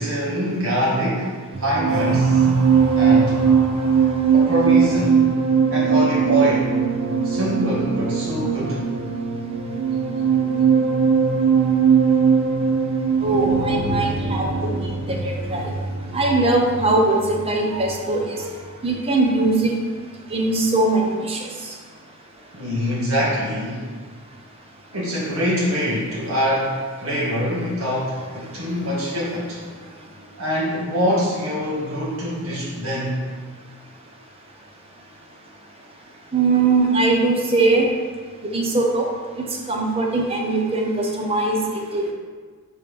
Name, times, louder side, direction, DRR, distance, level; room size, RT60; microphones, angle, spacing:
voice 1, 0.0-1.3 1.6-2.5 3.0-3.5 4.3-5.2 5.7-6.7 7.2-8.8 22.5-23.9 24.9-29.6 30.4-33.2, equal, 70° right, -5 dB, 1.7 m, -24 dB
sound 1, 1.5-18.2 18.4-18.8, right 6 dB, 90° right, 0.6 m, -20 dB
voice 2, 13.2-14.5 15.1-15.2 15.5-15.6 16.1-18.2 18.8-19.7 20.3-21.4 36.3-37.8 38.5-39.1 39.7-40.9 41.2-41.6 41.9-42.0, right 3 dB, 25° right, 0 dB, 0.8 m, -20 dB
5.5 x 5.4 x 3.4 m, 1.5 s
head